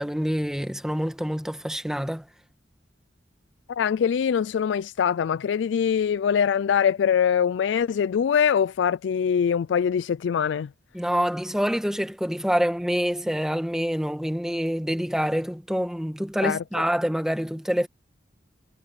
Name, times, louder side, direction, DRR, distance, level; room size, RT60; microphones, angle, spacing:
voice 1, 0.0-2.2 10.9-17.9, equal, 5° right, 1.4 m, -26 dB
voice 2, 3.7-10.7 16.4-16.6, left 7 dB, 80° left, 0.3 m, -23 dB
head